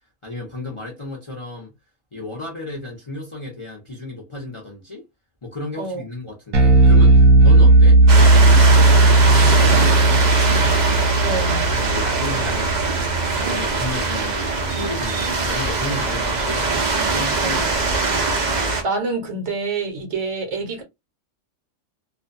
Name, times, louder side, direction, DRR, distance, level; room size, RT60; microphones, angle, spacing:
voice 1, 0.2-1.7 2.1-5.0 5.4-10.8 11.6-13.0 13.4-18.0, left 2 dB, 30° left, 0.6 m, -33 dB
Bass guitar, 6.5-13.0, right 2 dB, 90° right, 1.0 m, -14 dB
sound 1, 8.1-18.8, right 3 dB, 45° right, 0.6 m, -22 dB
voice 2, 11.2-11.7 17.4-17.6 18.6-20.8, right 3 dB, 65° right, 1.1 m, -27 dB
2.6 x 2.2 x 2.5 m
omnidirectional pair, 1.3 m